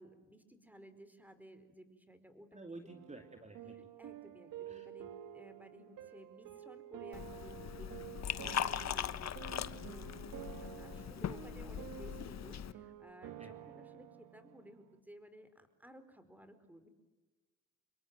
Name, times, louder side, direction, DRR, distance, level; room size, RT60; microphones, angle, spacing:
voice 1, 0.0-2.8 3.8-9.6 9.9-16.9, equal, 5° right, 11 dB, 4.8 m, -57 dB
voice 2, 2.5-3.8 4.7-4.9 13.4-13.5, right 2 dB, 20° right, 6 dB, 2.7 m, -51 dB
sound 1, 2.9-15.0, right 11 dB, 75° right, 1.9 m, -50 dB
Liquid, 7.1-12.7, left 9 dB, 55° left, 1.3 m, -40 dB
27.5 x 22.5 x 9.4 m, 1.2 s
supercardioid pair, 70°, 32 cm